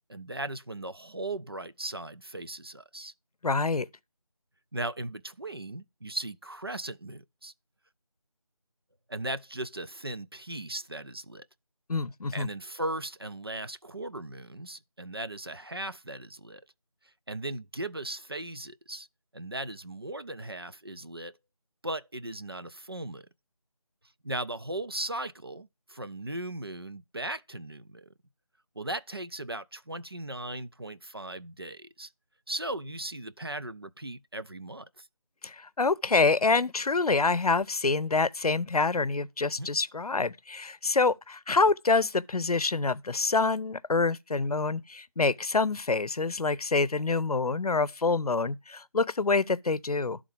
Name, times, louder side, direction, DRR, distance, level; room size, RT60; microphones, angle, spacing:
voice 1, 0.1-3.1 4.7-7.5 9.1-11.5 12.3-16.6 17.3-19.1 19.3-21.4 21.8-23.3 24.2-28.1 28.8-32.1 32.5-35.1 39.6-39.7, right 1 dB, 40° right, 0.4 m, -37 dB
voice 2, 3.4-3.9 11.9-12.5 35.4-50.2, left 3 dB, 85° left, 0.6 m, -26 dB
11.5 x 3.8 x 4.8 m
figure-of-eight pair, 170°, 19 cm